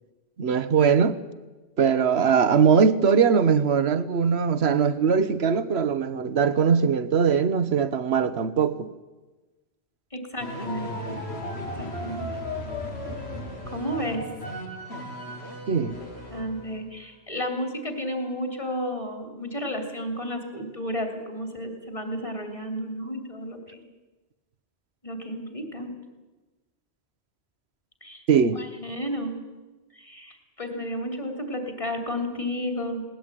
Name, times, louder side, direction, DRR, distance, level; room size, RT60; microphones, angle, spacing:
voice 1, 0.4-1.2 1.8-8.9 15.7-16.0 28.3-28.6, right 6 dB, 75° right, 1.3 m, -21 dB
voice 2, 10.1-11.2 11.8-12.3 13.7-14.3 16.3-23.8 25.0-25.9 28.0-28.2 28.6-29.4 30.0-33.0, equal, 30° left, 3.4 m, -32 dB
sound 1, 10.4-16.9, left 1 dB, 75° left, 4.0 m, -35 dB
19.5 x 19.0 x 9.0 m
omnidirectional pair, 1.1 m